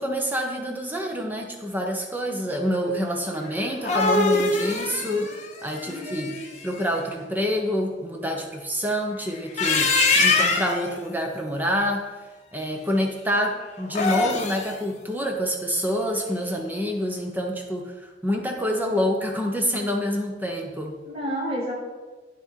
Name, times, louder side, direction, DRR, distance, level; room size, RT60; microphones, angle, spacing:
voice 1, 0.0-6.3 6.6-12.1 12.5-21.0, equal, 10° right, 2 dB, 1.0 m, -27 dB
sound 1, 3.6-6.6 9.4-10.9 13.8-14.7, left 3 dB, 40° left, 1.1 m, -23 dB
voice 2, 5.9-6.5 21.1-21.7, equal, 30° right, -5 dB, 2.7 m, -31 dB
9.9 x 6.0 x 4.6 m, 1.3 s
head